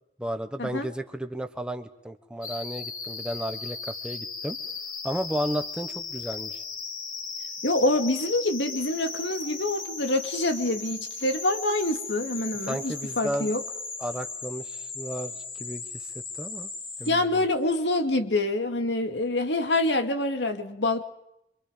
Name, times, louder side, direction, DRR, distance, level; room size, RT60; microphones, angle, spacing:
voice 1, 0.2-4.6 5.0-6.6 12.7-13.5 14.0-15.3 15.6-16.1 16.4-16.7 17.0-17.4, equal, 5° right, 8 dB, 1.2 m, -33 dB
sound 1, 2.4-17.1, left 4 dB, 50° left, 3.7 m, -37 dB
voice 2, 7.6-13.6 17.1-21.0, left 2 dB, 90° left, 6 dB, 2.3 m, -26 dB
27.0 x 25.5 x 5.2 m, 0.84 s
head